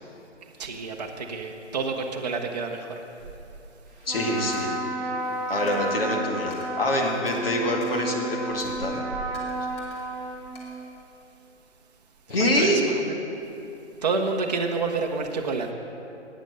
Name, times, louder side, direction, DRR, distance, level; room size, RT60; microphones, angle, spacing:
voice 1, 0.6-3.0 12.5-12.9 14.0-15.7, right 4 dB, 35° right, 1 dB, 0.8 m, -28 dB
Trumpet, 4.0-10.9, right 1 dB, 5° left, 1.9 m, -32 dB
voice 2, 4.1-5.1 5.5-9.0 12.3-12.8, left 1 dB, 50° left, 0 dB, 2.1 m, -25 dB
Coin (dropping), 4.5-4.8 5.7-6.0 6.5-6.7 7.3-7.4 7.8-8.0 8.6-8.8 9.3-10.1 10.6-11.5, left 1 dB, 25° left, 1.7 m, -48 dB
12.0 x 9.0 x 6.5 m, 2.8 s
figure-of-eight pair, 160°, 35 cm